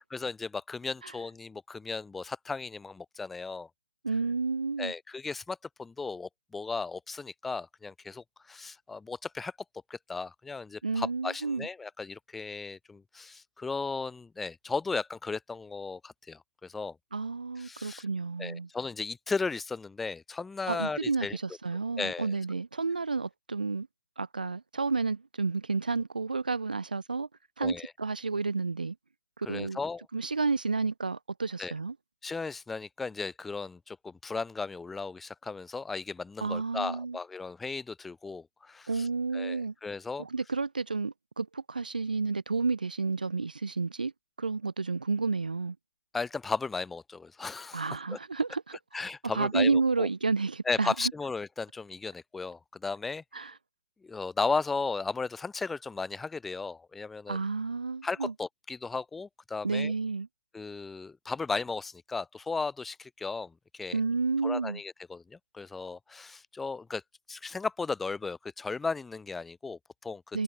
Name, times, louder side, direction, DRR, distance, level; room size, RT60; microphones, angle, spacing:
voice 1, 0.1-3.7 4.8-9.5 9.9-16.9 17.6-18.0 18.4-21.4 22.0-22.3 27.6-27.9 29.5-30.0 31.6-31.7 32.2-39.1 39.3-40.3 46.1-48.2 48.9-50.1 50.6-53.2 54.0-57.4 58.0-59.9 60.5-64.0 64.4-67.0 67.3-70.2, left 4 dB, 5° left, 1.3 m, -35 dB
voice 2, 4.0-4.9 10.8-11.7 17.1-18.7 20.7-23.9 24.2-27.3 27.6-29.0 29.4-29.8 30.1-32.0 36.4-37.2 38.9-39.7 40.2-44.1 44.4-45.8 47.7-48.8 49.2-51.1 53.3-53.5 57.3-58.3 59.6-60.3 63.9-64.8 70.3-70.4, right 4 dB, 85° right, 2.2 m, -31 dB
hypercardioid pair, 175°, 5 cm